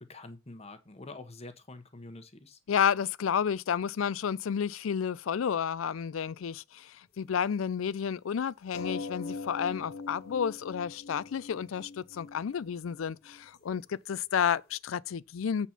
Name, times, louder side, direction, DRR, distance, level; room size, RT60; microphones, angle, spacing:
voice 1, 0.0-2.6, left 2 dB, 30° left, 1.1 m, -46 dB
voice 2, 2.7-15.7, left 7 dB, 85° left, 0.4 m, -31 dB
sound 1, 8.7-13.8 14.1-14.5, left 4 dB, 55° left, 1.2 m, -42 dB
8.1 x 4.2 x 5.8 m
head